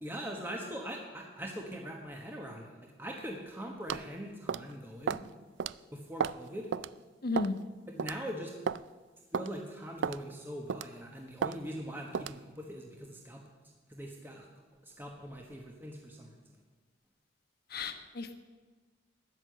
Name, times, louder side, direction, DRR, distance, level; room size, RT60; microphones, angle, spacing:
voice 1, 0.0-5.2 5.9-6.7 7.9-8.5 9.3-13.4 13.9-14.5 14.8-16.3, equal, 10° right, 0 dB, 1.3 m, -42 dB
sound 1, 3.9-4.1 4.5-4.7 5.1-5.3 5.6-5.7 6.2-6.4 6.7-6.9 7.4-7.6 8.0-8.2 8.7-8.8 9.3-9.5 10.0-10.2 10.7-10.9 11.4-11.6 12.1-12.4, right 7 dB, 75° right, 0.4 m, -33 dB
voice 2, 7.2-7.5 17.7-18.4, left 3 dB, 60° left, 7 dB, 1.2 m, -33 dB
13.5 x 10.0 x 7.8 m, 1.4 s
head